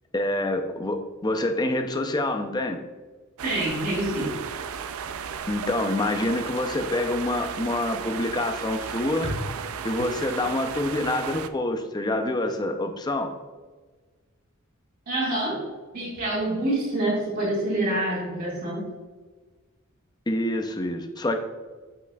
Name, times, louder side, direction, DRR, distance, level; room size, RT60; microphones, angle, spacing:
voice 1, 0.1-2.8 5.5-9.3 9.8-13.3 20.3-21.4, left 1 dB, 20° left, 5 dB, 0.5 m, -26 dB
voice 2, 3.4-4.3 15.1-15.6 15.9-18.8, right 1 dB, 45° right, -9 dB, 1.9 m, -26 dB
sound 1, 3.4-11.5, right 7 dB, 80° right, 0.4 m, -34 dB
7.8 x 5.9 x 2.3 m, 1.3 s
head